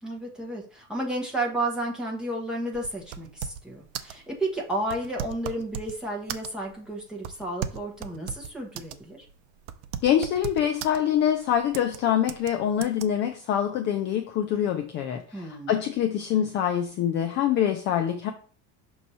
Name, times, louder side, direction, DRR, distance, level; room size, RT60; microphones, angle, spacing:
voice 1, 0.0-9.3 15.3-15.8, right 1 dB, ahead, -3 dB, 1.1 m, -32 dB
sound 1, 2.7-3.7 3.9-4.2 4.8-6.0 6.3-6.7 7.2-9.0 9.3-9.4 9.7-11.0 11.7-12.0 12.3-12.5 12.8-13.1, right 9 dB, 75° right, 0.7 m, -36 dB
voice 2, 10.0-18.3, left 10 dB, 30° left, 5 dB, 0.4 m, -25 dB
6.2 x 3.0 x 5.4 m, 0.42 s
cardioid pair, 170°, 36 cm